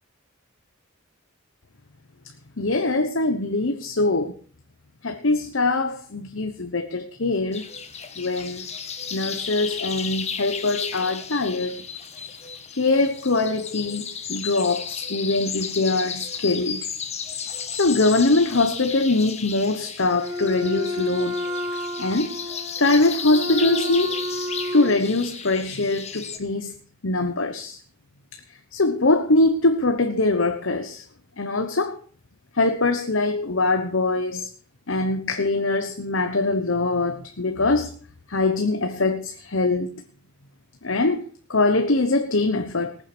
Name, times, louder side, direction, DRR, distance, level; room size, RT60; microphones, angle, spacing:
voice 1, 2.6-4.4 5.0-7.7 8.2-8.6 9.1-11.8 12.7-16.9 17.7-21.4 22.0-22.3 22.8-24.2 24.7-26.8 27.0-27.8 28.7-31.0 31.4-32.0 32.5-34.5 34.9-38.0 38.3-40.0 40.8-43.0, left 2 dB, 70° left, 1.1 m, -23 dB
sound 1, 7.5-26.4, left 6 dB, 30° left, 1.4 m, -34 dB
Wind instrument woodwind instrument, 20.1-25.0, left 1 dB, 15° right, 4.1 m, -30 dB
19.0 x 7.5 x 6.1 m
head